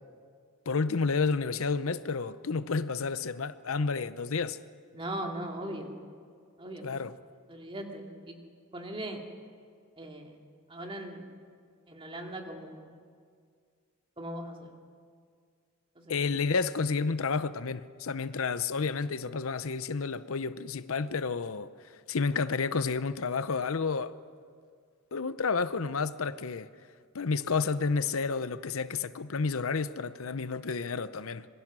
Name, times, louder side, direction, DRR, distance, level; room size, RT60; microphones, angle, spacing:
voice 1, 0.7-4.6 6.8-7.2 16.1-21.7 22.1-24.1 25.1-26.7 27.1-31.5, left 4 dB, 75° left, 0.7 m, -30 dB
voice 2, 4.9-5.9 6.6-6.9 7.5-8.4 8.7-9.2 10.0-10.3 10.7-11.3 11.9-12.9 14.2-14.8 16.0-16.2, right 1 dB, 25° right, 2.5 m, -39 dB
26.5 x 22.0 x 6.2 m
head